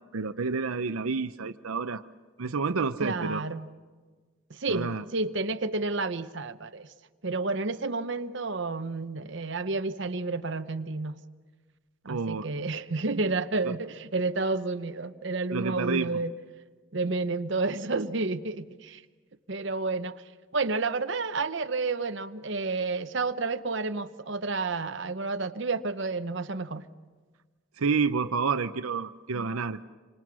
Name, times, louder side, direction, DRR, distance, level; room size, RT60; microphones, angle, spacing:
voice 1, 0.1-2.0 2.4-3.4 4.7-5.0 12.1-12.5 13.7-13.8 15.5-16.2 27.8-29.8, right 4 dB, 90° right, 10 dB, 0.7 m, -29 dB
voice 2, 3.0-3.7 4.5-6.9 7.2-11.1 12.0-16.3 16.9-19.0 19.5-20.1 20.5-26.9, right 3 dB, 60° right, 9 dB, 0.9 m, -30 dB
27.0 x 25.5 x 6.2 m, 1.4 s
head